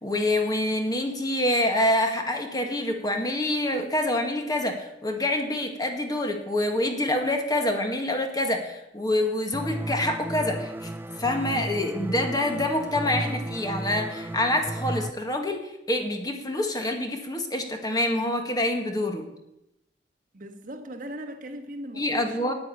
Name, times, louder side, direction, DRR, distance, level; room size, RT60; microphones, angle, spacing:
voice 1, 0.0-10.9 11.2-19.3 22.0-22.5, left 1 dB, 20° left, 1.8 m, -26 dB
sound 1, 9.5-15.1, right 1 dB, 10° right, 0.3 m, -34 dB
voice 2, 20.3-22.5, equal, 50° right, 1.4 m, -39 dB
9.6 x 9.3 x 9.1 m
head